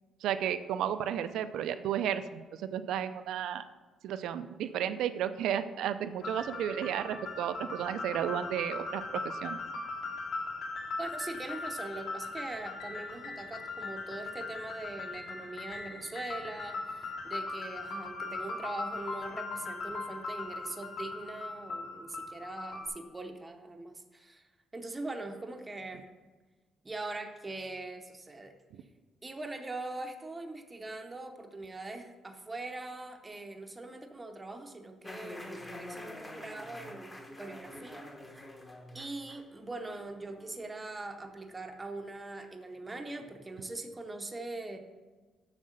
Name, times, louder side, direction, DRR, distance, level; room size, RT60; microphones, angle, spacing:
voice 1, 0.2-3.6 4.0-9.6, right 9 dB, 90° right, 11 dB, 0.5 m, -33 dB
sound 1, 6.2-22.9, left 3 dB, 65° left, 2.4 m, -39 dB
voice 2, 11.0-26.1 26.8-28.5 29.2-38.5 38.9-44.8, right 2 dB, 15° right, 5 dB, 0.6 m, -42 dB
sound 2, 35.0-40.7, left 1 dB, 15° left, 0.9 m, -47 dB
7.4 x 6.6 x 6.4 m, 1.3 s
cardioid pair, 180°, 0 cm